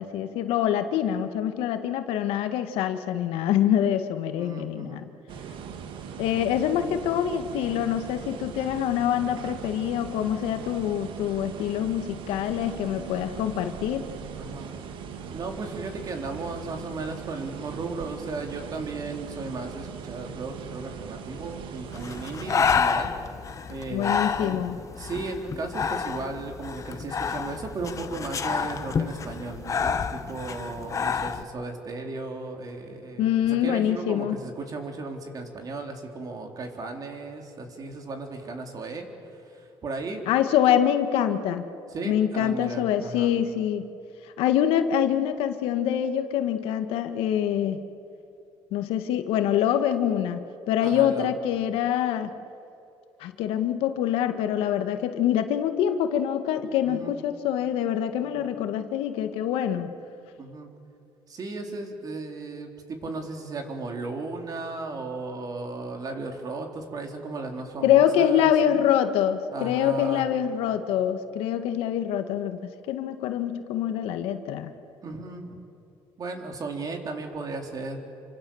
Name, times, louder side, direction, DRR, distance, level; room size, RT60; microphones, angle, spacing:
voice 1, 0.0-5.0 6.2-14.1 23.9-24.8 33.2-34.4 40.3-41.7 42.0-43.9 44.4-47.8 48.7-52.4 53.2-59.9 67.8-74.7, left 10 dB, 85° left, 8 dB, 1.7 m, -25 dB
voice 2, 4.4-5.0 14.4-14.7 15.3-23.1 23.7-24.6 24.9-40.2 41.9-43.3 50.8-51.3 56.8-57.2 58.2-58.5 60.4-60.7 61.3-68.5 69.5-70.3 75.0-75.6 76.2-78.0, right 3 dB, 40° right, 3 dB, 3.9 m, -35 dB
sound 1, 5.3-22.7, right 7 dB, 65° right, 1.9 m, -39 dB
Breathing, 21.9-31.4, left 6 dB, 35° left, 1.3 m, -29 dB
28.5 x 25.5 x 7.2 m, 2.7 s
cardioid pair, 115°, 9 cm